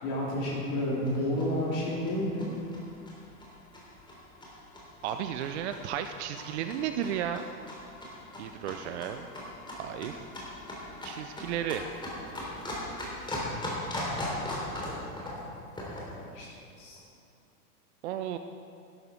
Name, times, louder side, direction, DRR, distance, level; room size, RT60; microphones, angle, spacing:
voice 1, 0.0-2.5 12.4-12.5 16.3-16.5 16.8-17.0, left 1 dB, 50° left, -5 dB, 3.5 m, -30 dB
sound 1, 0.8-16.2, left 1 dB, 10° left, 3.2 m, -39 dB
voice 2, 5.0-7.4 8.4-9.3 9.8-10.2 11.0-11.9 18.0-18.4, right 10 dB, 50° right, 8 dB, 0.7 m, -33 dB
12.5 x 11.5 x 4.5 m, 2.4 s
figure-of-eight pair, 100°, 46 cm